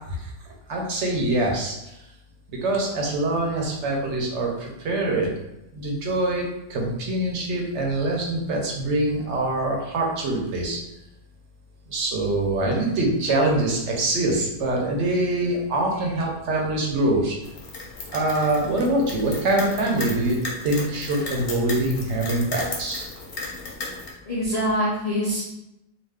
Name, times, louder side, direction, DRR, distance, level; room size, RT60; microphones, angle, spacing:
voice 1, 0.7-1.9 2.5-5.3 5.7-10.8 11.9-17.4 18.1-20.4 20.6-23.1, right 2 dB, 70° right, -1 dB, 0.9 m, -24 dB
sound 1, 17.4-24.1, left 3 dB, 55° left, 0.7 m, -35 dB
voice 2, 24.3-25.4, equal, 75° left, -5 dB, 0.3 m, -25 dB
2.4 x 2.3 x 3.4 m, 0.89 s
omnidirectional pair, 1.3 m